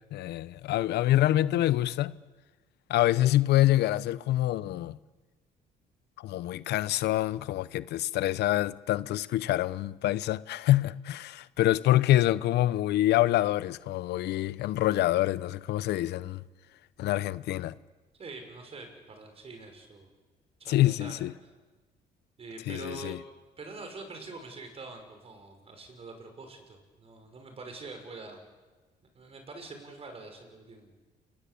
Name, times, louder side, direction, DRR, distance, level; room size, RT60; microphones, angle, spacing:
voice 1, 0.1-2.1 2.9-5.0 6.2-16.4 17.0-17.7 20.7-21.3 22.7-23.2, left 14 dB, 85° left, 0.8 m, -26 dB
voice 2, 18.2-20.1 20.6-21.2 22.4-23.2 23.6-28.4 29.1-30.9, right 3 dB, 35° right, 6.2 m, -45 dB
28.5 x 21.0 x 8.5 m
cardioid pair, 125°, 17 cm